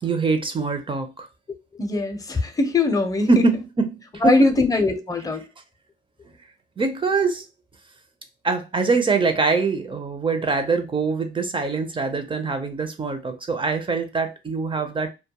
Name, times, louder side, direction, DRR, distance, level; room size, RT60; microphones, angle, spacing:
voice 1, 0.0-1.3 3.3-4.5 6.8-7.5 8.4-15.1, right 4 dB, 25° right, 0.5 m, -23 dB
voice 2, 1.8-3.4 4.2-5.4, left 2 dB, 20° left, 0.6 m, -21 dB
2.2 x 2.1 x 2.8 m
cardioid pair, 90°, 20 cm